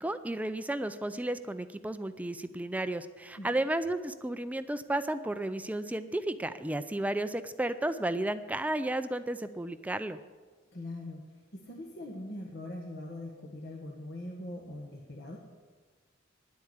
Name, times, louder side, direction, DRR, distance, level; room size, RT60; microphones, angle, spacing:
voice 1, 0.0-10.2, right 1 dB, 10° right, 11 dB, 0.4 m, -33 dB
voice 2, 10.7-15.4, left 1 dB, 60° left, -1 dB, 1.5 m, -42 dB
10.5 x 8.3 x 9.5 m, 1.4 s
head